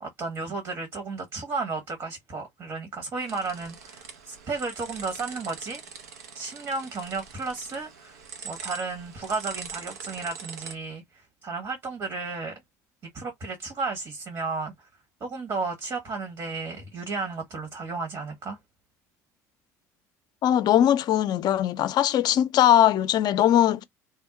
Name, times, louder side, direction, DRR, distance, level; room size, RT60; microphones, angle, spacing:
voice 1, 0.0-5.8 6.3-8.2 8.4-11.0 11.4-12.5 13.1-14.7 15.2-18.6, right 4 dB, 45° right, 1.3 m, -33 dB
sound 1, 3.3-10.7, right 6 dB, 85° right, 0.7 m, -42 dB
voice 2, 20.4-23.8, left 11 dB, 55° left, 0.5 m, -20 dB
2.7 x 2.1 x 3.8 m
hypercardioid pair, 70°, 8 cm